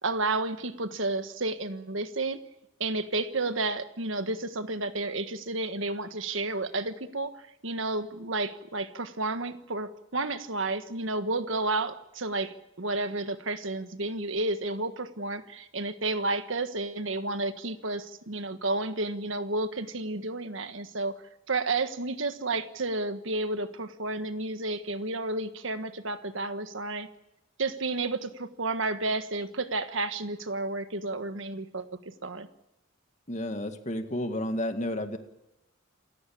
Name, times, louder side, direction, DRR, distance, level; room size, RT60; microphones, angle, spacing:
voice 1, 0.0-2.4 2.8-21.1 21.5-27.1 27.6-31.9 32.2-32.5, right 2 dB, 70° right, 10 dB, 1.5 m, -31 dB
voice 2, 33.3-35.2, left 1 dB, 35° left, 7 dB, 1.9 m, -31 dB
28.0 x 15.5 x 8.7 m, 0.90 s
head